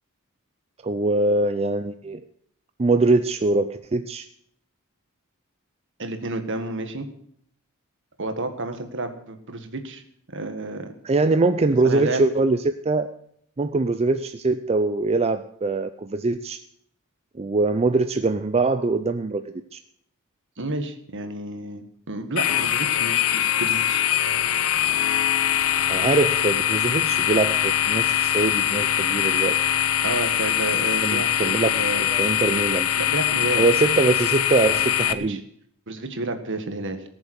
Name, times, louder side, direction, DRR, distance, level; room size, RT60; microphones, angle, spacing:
voice 1, 0.8-2.2 2.8-4.3 11.0-13.1 13.6-16.6 17.3-19.8 25.9-29.6 31.0-32.9 33.6-35.4, right 3 dB, 30° right, 9 dB, 0.5 m, -23 dB
voice 2, 6.0-7.1 8.2-10.0 10.3-10.9 11.8-12.2 20.6-24.1 30.0-32.1 33.0-33.6 35.0-35.4 35.9-37.0, right 2 dB, 60° right, 8 dB, 1.8 m, -31 dB
sound 1, 22.4-35.1, left 11 dB, 70° left, 0.8 m, -22 dB
18.5 x 7.2 x 8.2 m, 0.68 s
head